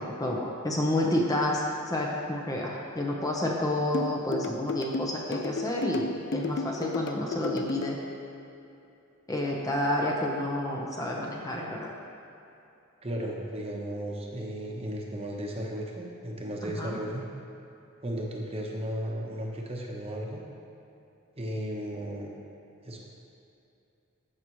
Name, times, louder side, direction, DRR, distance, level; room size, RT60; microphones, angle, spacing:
voice 1, 0.0-8.0 9.3-11.9 16.8-17.0, left 1 dB, 20° left, -2 dB, 0.8 m, -29 dB
sound 1, 3.9-7.9, left 3 dB, 60° left, 0.4 m, -32 dB
voice 2, 13.0-17.3 18.0-20.4 21.4-22.4 22.8-23.0, equal, 30° right, -1 dB, 1.0 m, -35 dB
14.0 x 5.8 x 3.1 m, 2.8 s
head